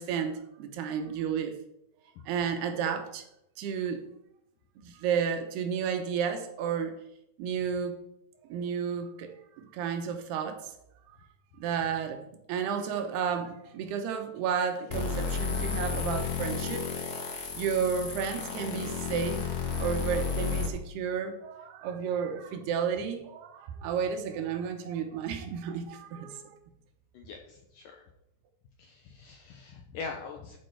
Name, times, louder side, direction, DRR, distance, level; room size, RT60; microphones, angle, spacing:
voice 1, 0.0-1.6 2.3-3.2 3.6-4.1 4.8-7.0 7.4-8.0 8.5-9.3 9.6-10.7 11.6-17.3 17.6-26.6, right 7 dB, 75° right, 5 dB, 3.0 m, -32 dB
sound 1, 14.9-20.7, left 5 dB, 55° left, 2.4 m, -32 dB
voice 2, 27.1-28.0 28.8-30.6, left 4 dB, 75° left, 3 dB, 2.0 m, -42 dB
12.5 x 6.5 x 4.7 m, 0.80 s
omnidirectional pair, 4.9 m